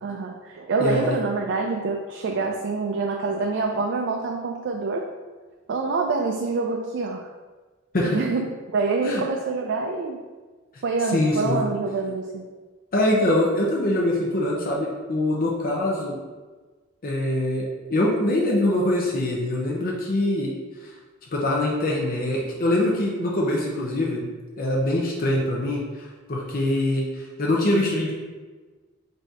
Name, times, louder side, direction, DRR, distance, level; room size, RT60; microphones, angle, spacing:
voice 1, 0.0-5.1 5.7-7.3 8.0-8.5 8.7-10.2 10.8-12.4, right 4 dB, 60° right, 1 dB, 0.4 m, -26 dB
voice 2, 0.8-1.2 7.9-8.2 9.0-9.2 11.1-11.6 12.9-16.2 17.0-20.5 21.3-24.2 24.6-28.1, left 1 dB, 45° left, -3 dB, 0.7 m, -23 dB
4.0 x 2.7 x 4.7 m, 1.3 s
head